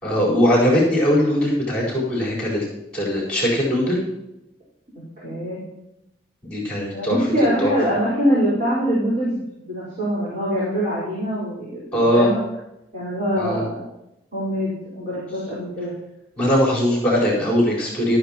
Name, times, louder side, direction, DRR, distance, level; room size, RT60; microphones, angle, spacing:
voice 1, 0.0-2.6 2.9-4.0 6.4-7.2 7.6-7.7 11.9-12.3 13.4-13.6 16.4-18.2, equal, 5° left, -5 dB, 4.5 m, -20 dB
voice 2, 5.2-5.6 6.9-12.4 12.9-13.8 14.3-15.9, equal, 50° right, -8 dB, 4.5 m, -23 dB
14.5 x 13.0 x 3.0 m, 0.88 s
head